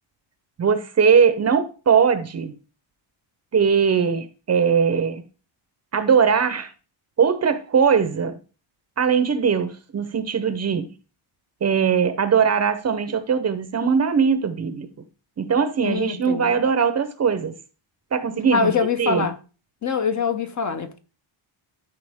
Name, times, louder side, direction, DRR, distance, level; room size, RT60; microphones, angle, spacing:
voice 1, 0.6-2.5 3.5-5.2 5.9-6.7 7.2-8.4 9.0-10.9 11.6-14.9 15.4-17.5 18.1-18.7 19.0-19.3, right 6 dB, 30° right, 0.7 m, -20 dB
voice 2, 15.8-16.5 18.5-19.4 19.8-21.0, left 5 dB, 35° left, 0.8 m, -24 dB
13.0 x 4.8 x 3.5 m
cardioid pair, 160°, 50 cm